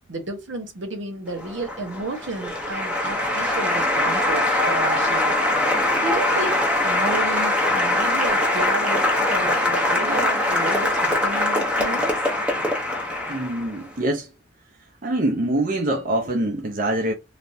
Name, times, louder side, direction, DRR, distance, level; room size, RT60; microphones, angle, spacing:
voice 1, 0.1-5.3 6.0-12.2, right 2 dB, 70° right, 0.9 m, -32 dB
Applause, 1.3-13.8, left 1 dB, 5° right, 0.6 m, -22 dB
voice 2, 13.3-14.3 15.0-17.1, right 1 dB, 45° right, 0.6 m, -24 dB
3.3 x 2.5 x 2.6 m
head